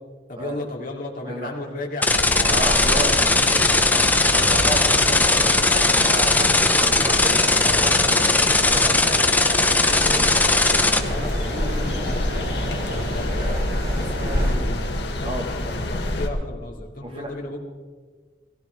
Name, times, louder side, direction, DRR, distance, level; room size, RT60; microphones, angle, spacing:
voice 1, 0.3-2.1 2.4-3.1 3.5-3.9 8.6-9.2 9.6-14.9 15.2-17.6, left 2 dB, 50° left, -2 dB, 2.7 m, -35 dB
sound 1, 2.0-11.0, left 3 dB, 10° left, 0.8 m, -19 dB
sound 2, 2.1-16.3, left 1 dB, 75° left, 1.7 m, -27 dB
sound 3, 2.3-14.5, equal, 50° right, 3.3 m, -33 dB
voice 2, 2.5-3.2 3.9-4.0 4.3-9.1 15.2-15.5 17.0-17.4, right 1 dB, 30° right, 3 dB, 1.5 m, -32 dB
18.0 x 16.0 x 4.7 m, 1.5 s
head